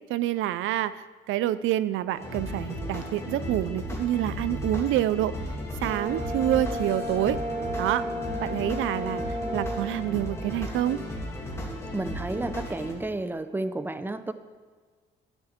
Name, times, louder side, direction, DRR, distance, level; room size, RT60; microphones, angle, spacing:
voice 1, 0.1-5.3 5.8-7.4 7.8-8.1 8.4-11.0, right 13 dB, 80° right, 16 dB, 0.4 m, -27 dB
sound 1, 2.2-12.9, left 1 dB, 15° left, 2.7 m, -35 dB
Brass instrument, 5.8-9.9, equal, 45° right, 1.7 m, -33 dB
voice 2, 11.9-14.3, right 2 dB, 10° right, 11 dB, 0.6 m, -31 dB
12.5 x 9.9 x 3.6 m, 1.5 s
cardioid pair, 90°, 20 cm